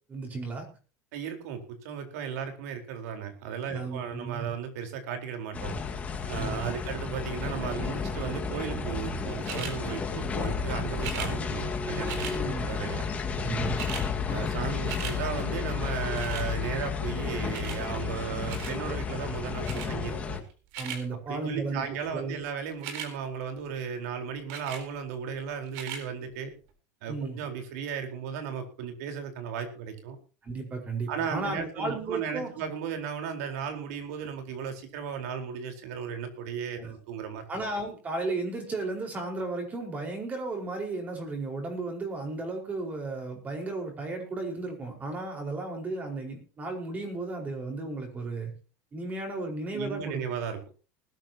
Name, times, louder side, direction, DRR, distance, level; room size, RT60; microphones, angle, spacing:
voice 1, 0.1-0.7 3.7-4.5 6.4-6.8 12.3-12.7 13.3-13.8 20.8-21.8 22.1-22.4 27.1-27.4 30.4-32.5 36.8-36.9 37.5-48.5 48.9-50.2, right 3 dB, 20° right, 3 dB, 5.0 m, -34 dB
voice 2, 1.1-5.8 6.3-13.0 14.3-20.4 21.3-26.5 27.0-30.2 31.1-37.4 49.7-50.6, right 7 dB, 85° right, 6 dB, 4.4 m, -35 dB
sound 1, 5.5-20.4, left 5 dB, 15° left, 1.9 m, -32 dB
sound 2, 9.4-9.8 11.0-11.3 12.1-12.4 13.3-13.4 13.6-14.1 14.5-15.2 16.2-16.5 17.5-17.8 18.5-18.8 19.6-19.9 20.5-21.0 22.7-23.1 24.5-24.9 25.7-26.0 26.7-26.8, right 7 dB, 65° right, 4.0 m, -38 dB
20.0 x 13.0 x 3.0 m, 0.36 s
cardioid pair, 170°, 8 cm